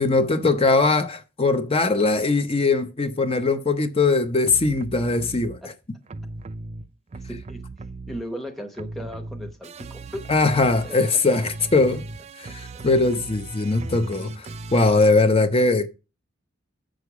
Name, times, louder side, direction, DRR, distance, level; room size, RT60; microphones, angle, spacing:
voice 1, 0.0-5.6 10.3-12.0 12.4-14.5 14.7-15.9, left 3 dB, 30° left, 0.7 m, -20 dB
sound 1, 4.5-5.6 6.1-8.5 8.7-15.1, right 3 dB, 35° right, 0.4 m, -38 dB
voice 2, 7.2-7.6 8.1-10.2 10.8-11.0 12.4-12.5, equal, ahead, 0.9 m, -36 dB
8.0 x 6.5 x 4.8 m
head